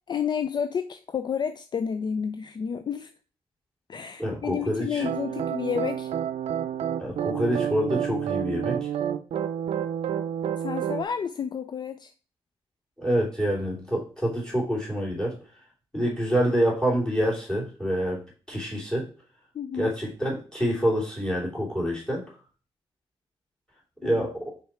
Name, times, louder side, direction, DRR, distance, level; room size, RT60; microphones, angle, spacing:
voice 1, 0.1-3.1 3.9-6.1 10.6-12.1 19.5-20.0 24.0-24.3, left 7 dB, 45° left, 11 dB, 0.4 m, -30 dB
voice 2, 4.2-5.0 7.0-8.8 13.0-15.4 15.9-18.2 18.5-19.1 19.8-22.3 24.0-24.5, equal, 5° left, -2 dB, 3.1 m, -26 dB
sound 1, 5.0-11.1, right 9 dB, 75° right, 0.6 m, -29 dB
5.5 x 4.8 x 4.4 m, 0.38 s
cardioid pair, 105°, 10 cm